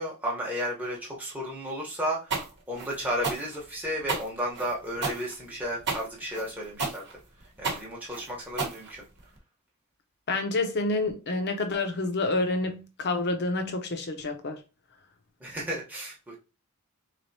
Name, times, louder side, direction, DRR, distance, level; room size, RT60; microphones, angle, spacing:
voice 1, 0.0-7.1 7.6-9.1 15.4-16.4, equal, 10° right, 0.9 m, -33 dB
sound 1, 2.3-9.4, right 4 dB, 50° right, 1.0 m, -32 dB
voice 2, 10.3-14.6, left 2 dB, 50° left, 0.7 m, -28 dB
3.8 x 3.3 x 2.7 m
head